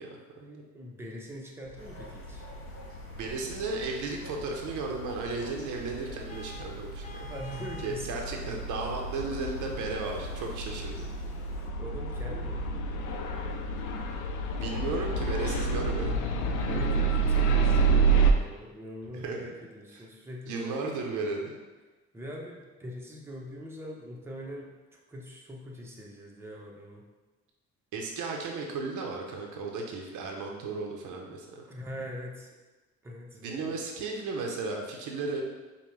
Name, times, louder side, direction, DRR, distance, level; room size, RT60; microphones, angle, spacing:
voice 1, 0.0-0.6 3.1-7.0 7.8-11.1 14.6-16.2 19.1-19.6 20.0-20.1 20.5-21.5 27.9-31.6 33.3-35.4, right 3 dB, 85° right, 1 dB, 0.7 m, -35 dB
voice 2, 0.7-2.5 7.2-8.1 11.3-12.7 16.7-21.1 22.1-24.7 25.1-27.0 31.7-32.5 33.0-33.8, equal, 10° right, -3 dB, 0.7 m, -42 dB
sound 1, 1.8-18.3, right 4 dB, 80° left, 0.5 m, -30 dB
sound 2, 1.8-11.7, left 1 dB, 45° left, 1.1 m, -51 dB
Vehicle horn car horn honking, 6.3-8.1, right 1 dB, 25° left, 0.4 m, -47 dB
5.3 x 2.2 x 3.2 m, 1.2 s
cardioid pair, 90°, 30 cm